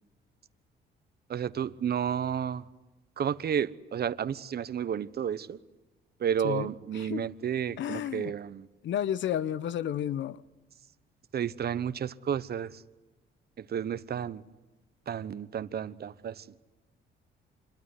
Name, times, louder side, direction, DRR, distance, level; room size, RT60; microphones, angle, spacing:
voice 1, 1.3-2.7 3.2-5.6 6.2-8.7 11.3-12.8 13.6-14.4 15.1-16.5, right 8 dB, 50° right, 1.1 m, -32 dB
voice 2, 6.4-7.3 7.8-8.3 8.8-10.4, left 10 dB, 70° left, 0.9 m, -32 dB
26.5 x 22.5 x 9.8 m
cardioid pair, 90°, 20 cm